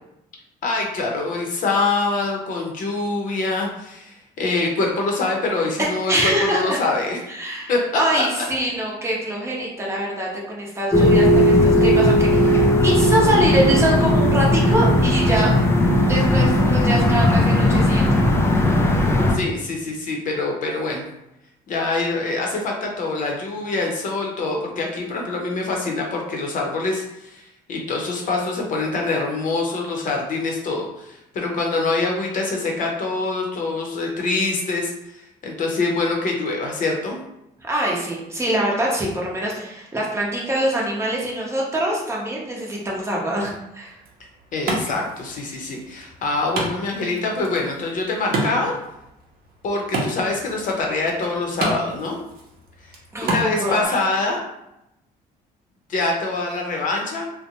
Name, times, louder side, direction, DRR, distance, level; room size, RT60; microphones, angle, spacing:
voice 1, 0.6-6.1 6.5-7.2 7.7-7.8 19.3-21.0 21.7-35.2 35.4-37.2 44.5-48.7 49.6-52.2 53.2-54.4 55.9-57.3, left 3 dB, 50° left, 0 dB, 0.7 m, -24 dB
voice 2, 5.8-6.8 7.3-15.5 16.1-18.2 37.6-44.0 53.1-54.0, right 1 dB, 15° right, -3 dB, 0.7 m, -24 dB
sound 1, 10.9-19.3, left 1 dB, 15° left, 0.3 m, -17 dB
Wood, 43.9-53.9, right 2 dB, 60° right, 0.7 m, -31 dB
2.5 x 2.1 x 2.8 m, 0.87 s
cardioid pair, 110°, 17 cm